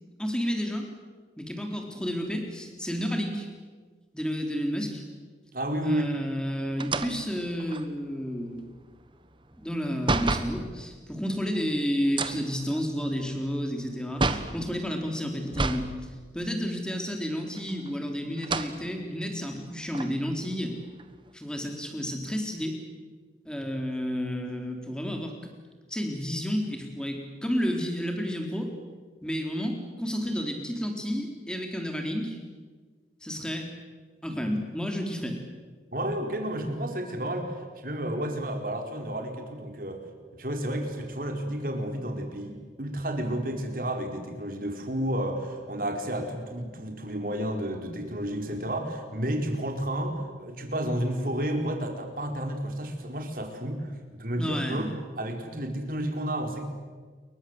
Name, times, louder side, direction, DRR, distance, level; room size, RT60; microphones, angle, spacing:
voice 1, 0.2-0.9 1.4-3.5 4.1-5.0 5.8-8.7 9.6-15.9 16.3-20.8 21.3-22.8 23.5-25.3 25.9-28.7 29.2-32.4 33.2-33.7 34.2-35.4 54.3-54.9, equal, 5° left, 3 dB, 4.0 m, -31 dB
voice 2, 5.5-6.2 35.9-37.6 37.8-40.0 40.3-54.9 55.2-56.6, right 1 dB, 50° right, 4 dB, 4.5 m, -31 dB
sound 1, 6.8-10.6 12.0-14.6 15.5-15.9 16.3-16.4 17.5-18.0 18.4-18.8 19.4-19.5 19.9-21.3, right 3 dB, 30° right, 1.4 m, -31 dB
29.0 x 23.0 x 8.1 m, 1.5 s
head